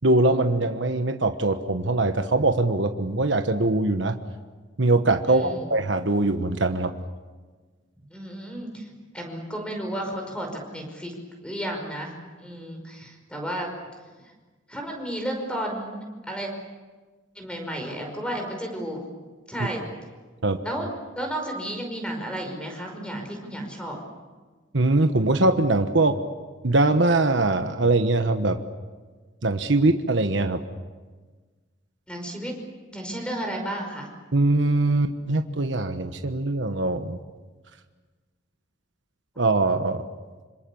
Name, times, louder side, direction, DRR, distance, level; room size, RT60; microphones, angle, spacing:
voice 1, 0.0-4.2 4.8-6.9 20.4-20.6 24.7-26.2 26.6-28.6 29.4-30.6 34.3-37.2 39.4-40.0, right 2 dB, 70° right, 7 dB, 1.3 m, -22 dB
voice 2, 5.2-5.6 8.1-8.9 9.1-11.2 11.4-13.7 14.7-16.5 17.4-19.0 19.5-19.8 20.6-20.9 21.2-24.0 32.1-32.5 32.9-34.1, right 1 dB, 5° left, 3 dB, 5.3 m, -32 dB
26.5 x 26.5 x 7.1 m, 1.4 s
head